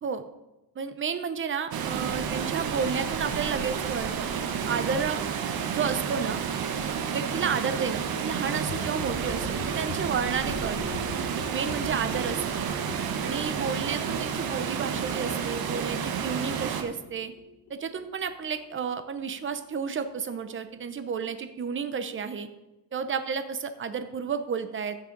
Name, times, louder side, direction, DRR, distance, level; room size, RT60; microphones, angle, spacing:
voice 1, 0.8-5.2 5.7-6.4 7.1-11.0 11.5-12.6 13.2-17.3 17.7-22.5 22.9-25.0, right 6 dB, 25° right, 10 dB, 0.7 m, -31 dB
Water, 1.7-16.8, right 7 dB, 50° right, 1.0 m, -30 dB
sound 1, 8.6-20.1 20.4-20.5 20.7-20.8 21.0-21.1 21.3-21.4 21.6-21.7 21.9-22.0, left 3 dB, 85° left, 1.5 m, -42 dB
15.0 x 6.3 x 3.9 m, 1.0 s
cardioid pair, 155°, 46 cm